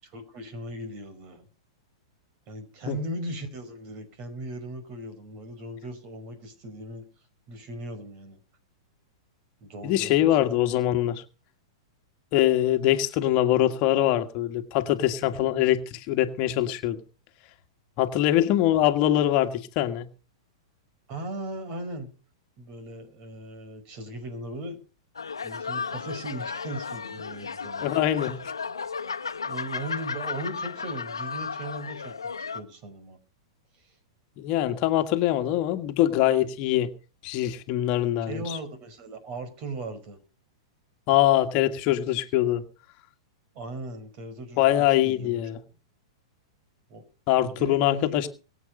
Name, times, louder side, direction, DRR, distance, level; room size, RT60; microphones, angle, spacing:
voice 1, 0.0-1.5 2.5-7.0 7.5-8.4 9.6-10.5 21.1-22.1 22.6-24.8 25.4-27.9 29.4-32.1 32.5-33.2 33.8-34.0 35.5-35.8 38.3-40.2 43.5-45.6 46.9-47.0 47.4-48.3, right 1 dB, 45° right, 11 dB, 5.3 m, -38 dB
voice 2, 9.8-11.2 12.3-17.0 18.0-20.1 27.8-28.3 34.4-36.9 37.2-38.4 41.1-42.6 44.6-45.6 47.3-48.3, left 13 dB, 45° left, 6 dB, 1.7 m, -23 dB
sound 1, 25.2-32.6, left 5 dB, 90° left, 1.2 m, -34 dB
22.5 x 8.3 x 5.4 m, 0.37 s
hypercardioid pair, 110°, 2 cm